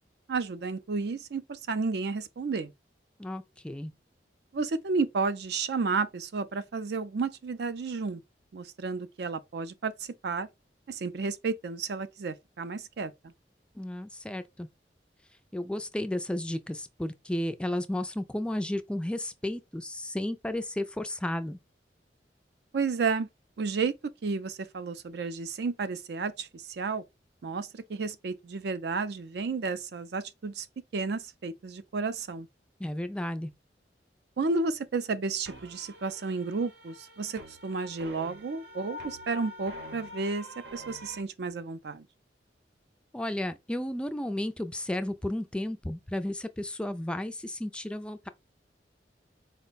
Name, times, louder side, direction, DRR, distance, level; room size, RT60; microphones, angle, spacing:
voice 1, 0.3-2.7 4.5-8.2 8.5-10.5 10.9-13.1 22.7-23.3 23.6-23.9 24.2-27.0 27.4-30.7 30.9-32.5 34.4-42.1, right 4 dB, 65° right, 0.4 m, -32 dB
voice 2, 3.2-3.9 13.8-14.7 15.5-21.6 32.8-33.5 43.1-48.3, left 1 dB, 5° left, 0.3 m, -33 dB
sound 1, 35.5-41.2, left 1 dB, 85° right, 0.9 m, -45 dB
4.4 x 2.1 x 3.9 m
head